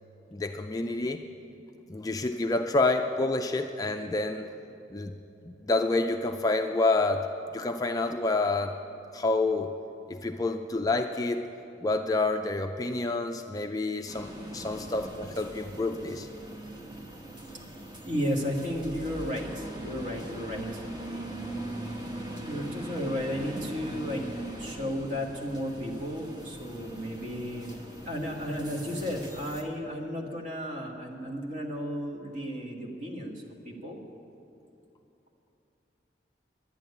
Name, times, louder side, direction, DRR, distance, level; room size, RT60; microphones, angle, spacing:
voice 1, 0.3-1.2 1.9-4.5 4.9-5.1 5.4-8.8 9.1-9.7 10.1-11.5 11.8-16.3, left 2 dB, 20° left, 5 dB, 0.4 m, -28 dB
sound 1, 14.1-29.6, right 1 dB, 25° right, 1.1 m, -41 dB
voice 2, 17.3-21.3 22.5-24.3 24.6-27.7 28.1-34.0, equal, 40° right, -1 dB, 1.7 m, -34 dB
11.5 x 8.9 x 9.6 m, 2.8 s
head